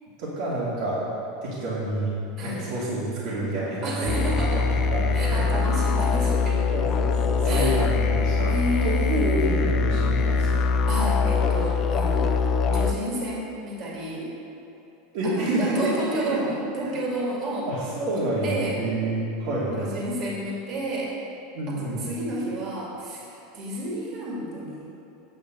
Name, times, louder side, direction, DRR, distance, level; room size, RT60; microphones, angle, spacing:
voice 1, 0.2-1.0 1.4-2.1 2.4-4.6 4.9-5.4 6.7-8.5 8.8-10.7 15.1-15.9 16.3-16.4 17.7-19.9 21.5-22.1, right 1 dB, 65° right, -8 dB, 2.6 m, -28 dB
voice 2, 2.4-2.7 3.8-4.7 5.1-6.6 7.4-7.8 8.5-9.5 10.4-10.5 10.9-12.5 12.7-14.3 15.2-17.7 18.1-18.8 19.8-21.2 21.7-24.9, right 1 dB, 45° right, -4 dB, 2.4 m, -31 dB
sound 1, 4.1-12.9, left 4 dB, 35° left, 0.6 m, -23 dB
8.9 x 5.8 x 8.2 m, 2.9 s
supercardioid pair, 135°, 0 cm